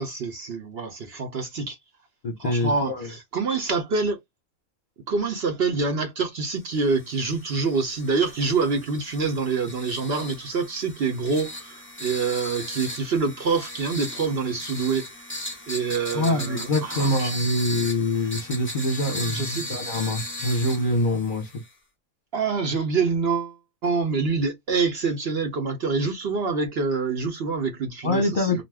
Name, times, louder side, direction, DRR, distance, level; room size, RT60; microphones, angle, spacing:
voice 1, 0.0-1.8 2.4-4.2 5.1-15.0 15.7-17.3 19.1-19.7 22.3-23.6 23.8-28.6, right 4 dB, 55° right, 0.8 m, -26 dB
voice 2, 2.2-3.1 16.1-21.5 28.0-28.6, left 1 dB, 45° left, 0.8 m, -25 dB
sound 1, 6.8-21.7, left 1 dB, 10° left, 0.6 m, -37 dB
2.5 x 2.3 x 3.3 m
omnidirectional pair, 1.4 m